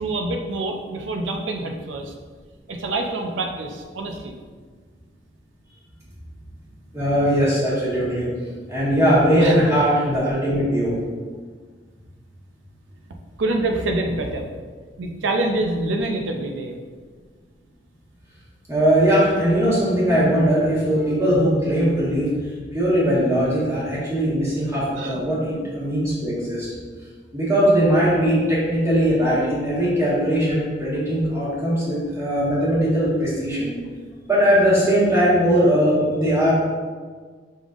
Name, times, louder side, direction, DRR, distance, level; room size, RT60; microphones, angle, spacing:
voice 1, 0.0-2.1 2.7-4.3 9.4-9.6 13.4-14.5 15.0-16.8 24.9-25.7, right 2 dB, 85° right, 3 dB, 0.5 m, -26 dB
voice 2, 6.9-8.3 8.7-10.9 18.7-22.3 22.7-26.7 27.3-33.7 34.3-36.5, equal, 15° right, -9 dB, 1.5 m, -20 dB
5.2 x 3.5 x 2.5 m, 1.6 s
head